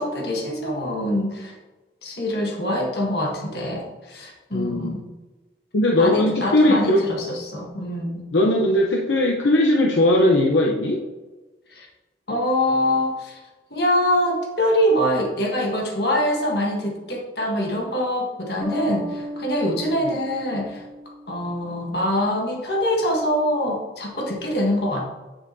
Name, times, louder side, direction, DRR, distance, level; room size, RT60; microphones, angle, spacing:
voice 1, 0.0-1.5 2.0-5.0 6.0-8.2 11.7-11.9 12.3-13.4 13.7-20.8 21.3-25.0, equal, 60° left, -1 dB, 1.5 m, -24 dB
voice 2, 4.5-4.9 5.7-7.1 8.3-11.0 20.0-20.2, left 1 dB, 85° left, 0 dB, 0.7 m, -19 dB
sound 1, 18.6-22.0, left 1 dB, 10° right, 1.8 m, -35 dB
8.8 x 7.4 x 2.7 m, 1.2 s
head